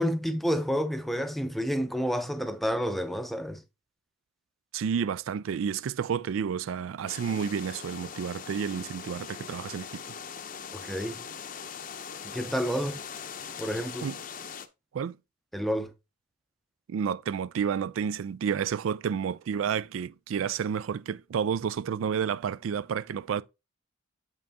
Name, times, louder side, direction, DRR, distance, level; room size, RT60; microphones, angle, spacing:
voice 1, 0.0-3.6 10.8-11.2 12.3-13.0 13.6-14.1 15.5-15.9, equal, ahead, 0.5 m, -29 dB
voice 2, 4.7-10.2 14.0-14.2 14.9-15.2 16.9-23.4, right 7 dB, 90° right, 0.3 m, -30 dB
sound 1, 7.1-14.7, left 7 dB, 45° left, 0.6 m, -41 dB
7.9 x 5.5 x 2.7 m
head